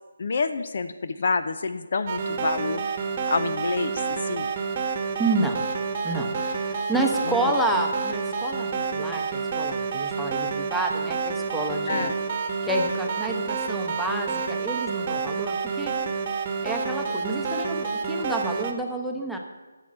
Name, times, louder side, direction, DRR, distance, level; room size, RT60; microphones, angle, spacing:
voice 1, 0.2-2.8 3.3-4.5 7.2-7.3 11.9-12.1, left 4 dB, 50° left, 10 dB, 0.6 m, -28 dB
sound 1, 2.1-18.7, right 5 dB, 30° right, 1.2 m, -29 dB
voice 2, 5.2-5.6 6.0-12.1 12.6-15.9 16.6-19.4, right 2 dB, ahead, 1 dB, 1.0 m, -29 dB
11.0 x 7.3 x 7.6 m, 1.2 s
figure-of-eight pair, 155°, 0 cm